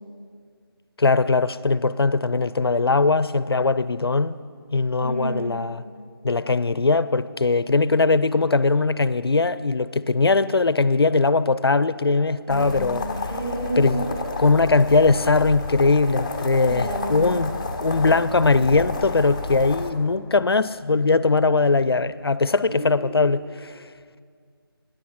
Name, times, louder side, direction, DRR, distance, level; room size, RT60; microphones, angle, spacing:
voice 1, 1.0-4.4 4.7-5.8 6.2-13.1 13.8-14.1 14.4-17.5 17.8-23.8, left 3 dB, 80° left, 0.5 m, -20 dB
voice 2, 5.0-5.6 12.5-12.8 13.3-14.2 16.7-17.4 22.7-23.1, right 1 dB, 20° right, 3.0 m, -31 dB
sound 1, 12.5-19.9, left 3 dB, 15° left, 0.7 m, -31 dB
15.5 x 10.5 x 5.9 m
figure-of-eight pair, 165°, 13 cm